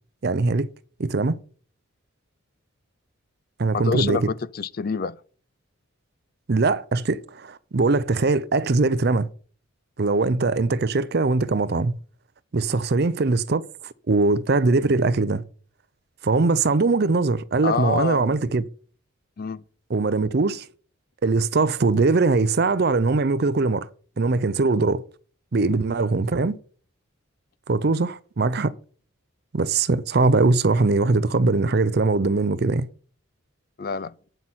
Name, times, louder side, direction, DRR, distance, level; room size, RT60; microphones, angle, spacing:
voice 1, 0.2-0.7 1.0-1.4 3.6-4.3 6.5-9.3 10.0-11.9 12.5-15.4 16.2-18.6 19.9-20.7 21.2-23.9 24.2-25.0 25.5-26.6 27.7-28.7 29.5-32.9, right 3 dB, 50° right, 0.5 m, -21 dB
voice 2, 3.7-5.2 12.7-12.8 17.6-18.3 19.4-19.6 33.8-34.1, left 5 dB, 45° left, 0.4 m, -27 dB
9.1 x 6.2 x 5.6 m
head